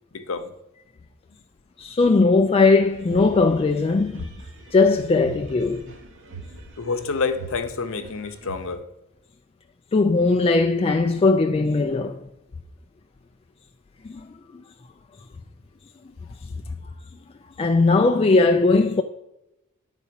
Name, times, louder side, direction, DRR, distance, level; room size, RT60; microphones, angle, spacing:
voice 1, 0.1-0.5 6.8-8.8, left 4 dB, 65° left, 0.8 m, -28 dB
voice 2, 1.8-4.3 4.7-5.9 9.9-12.2 14.1-14.2 17.6-19.0, left 3 dB, 25° left, 0.3 m, -19 dB
sound 1, 2.8-8.7, right 3 dB, 60° right, 1.3 m, -43 dB
10.0 x 4.1 x 5.8 m
head